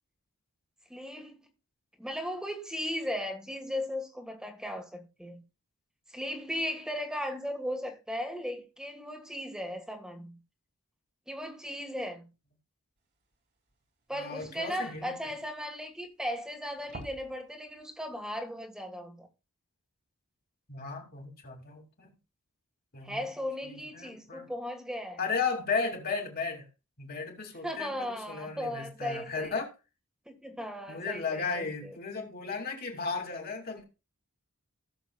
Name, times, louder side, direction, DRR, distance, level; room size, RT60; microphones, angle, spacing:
voice 1, 0.9-1.4 2.0-5.4 6.1-10.4 11.3-12.3 14.1-19.3 23.0-25.2 27.6-29.5 30.3-32.0, equal, 5° right, 1.7 m, -37 dB
Door Handle, 13.3-13.4 13.7-13.8 14.0-16.3 16.7-17.4 17.8-17.9 18.4-18.5, right 2 dB, 50° right, 2.9 m, -49 dB
voice 2, 14.1-15.1 20.7-22.1 22.9-23.2 23.6-24.5 25.2-26.7 27.0-29.7 30.9-33.8, left 4 dB, 45° left, 2.7 m, -35 dB
17.0 x 7.0 x 2.4 m
head